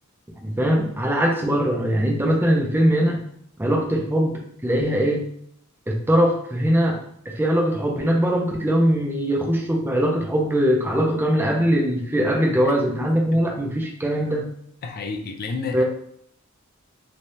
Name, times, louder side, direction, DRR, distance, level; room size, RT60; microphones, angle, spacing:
voice 1, 0.4-3.2 3.6-5.3 5.9-7.0 7.3-14.5 15.7-15.8, equal, 10° right, 0 dB, 0.5 m, -21 dB
voice 2, 14.8-15.8, left 4 dB, 45° left, 3 dB, 0.4 m, -30 dB
3.3 x 2.3 x 2.7 m, 0.68 s
head